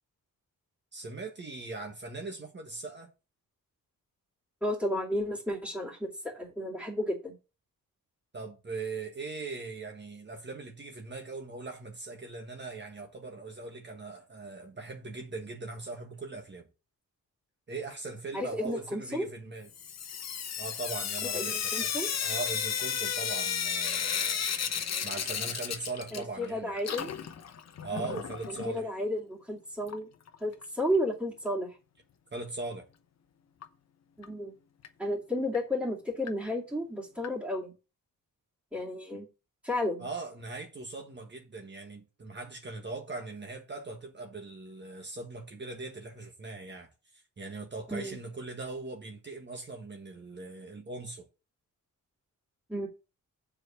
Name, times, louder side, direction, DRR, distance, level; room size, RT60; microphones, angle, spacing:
voice 1, 0.9-3.1 8.3-16.7 17.7-19.7 20.6-21.9 22.2-24.5 25.0-26.7 27.8-28.9 32.3-32.9 40.0-51.3, right 3 dB, 30° right, 1.4 m, -40 dB
voice 2, 4.6-7.4 18.3-19.3 21.3-22.1 26.1-27.1 27.9-28.2 28.5-30.1 30.4-31.8 34.2-34.5 35.0-37.7 38.7-39.3 39.6-40.0 47.9-48.2 52.7-52.9, left 1 dB, 5° right, 2.7 m, -32 dB
Sink (filling or washing) / Drip, 19.7-26.5 26.7-28.7 29.9-30.0 30.3-30.4 30.6-30.7 33.6-33.7 34.2-34.3 34.8-34.9 35.5-35.6 36.3-36.4 37.2-37.3, left 7 dB, 50° left, 0.8 m, -33 dB
7.5 x 5.0 x 6.5 m
wide cardioid pair, 140°, 34 cm